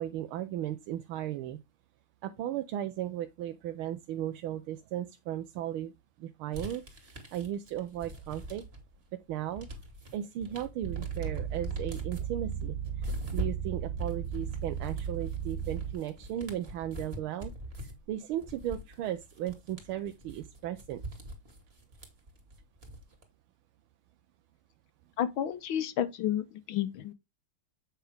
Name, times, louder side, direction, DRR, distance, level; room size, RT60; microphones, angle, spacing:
voice 1, 0.0-1.6 2.2-5.9 6.2-6.8 7.3-8.6 9.3-9.7 10.1-17.5 18.1-21.0, right 11 dB, 85° right, 1.6 m, -36 dB
sound 1, 6.5-9.0 9.3-23.2, right 1 dB, 30° right, 2.4 m, -42 dB
sound 2, 10.8-15.9, right 8 dB, 60° right, 0.4 m, -36 dB
voice 2, 25.2-27.1, left 10 dB, 75° left, 1.6 m, -31 dB
8.3 x 5.7 x 3.5 m
omnidirectional pair, 2.3 m